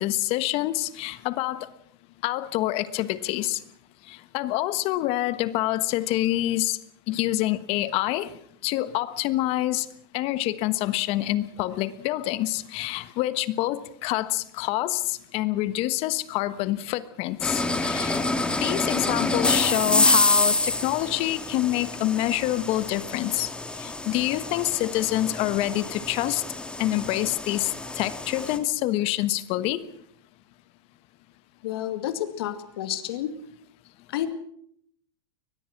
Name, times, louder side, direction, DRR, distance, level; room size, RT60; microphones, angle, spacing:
voice 1, 0.0-1.7 2.2-3.6 4.1-6.8 7.1-8.3 8.6-9.9 10.1-23.5 23.8-26.4 26.8-27.7 27.9-29.9, left 15 dB, 50° left, 14 dB, 1.3 m, -26 dB
sound 1, 17.4-28.6, left 2 dB, 10° left, 2.1 m, -27 dB
voice 2, 31.6-33.3 34.1-34.3, left 12 dB, 75° left, 9 dB, 2.3 m, -30 dB
22.5 x 20.5 x 6.0 m, 0.68 s
supercardioid pair, 120°, 13 cm